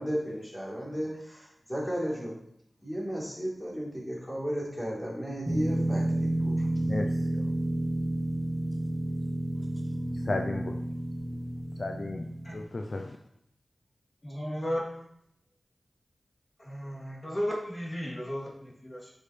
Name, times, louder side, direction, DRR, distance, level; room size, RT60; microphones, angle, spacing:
voice 1, 0.0-2.4 2.8-6.7, equal, 10° left, -6 dB, 3.7 m, -34 dB
sound 1, 5.4-12.6, right 1 dB, 10° right, 1.3 m, -30 dB
voice 2, 6.8-7.5 10.1-10.8 11.7-13.2, left 2 dB, 55° left, 4 dB, 0.6 m, -34 dB
voice 3, 14.2-15.1 16.6-19.1, equal, 25° left, -5 dB, 3.1 m, -34 dB
10.0 x 6.3 x 3.4 m, 0.72 s
wide cardioid pair, 65°, 0 cm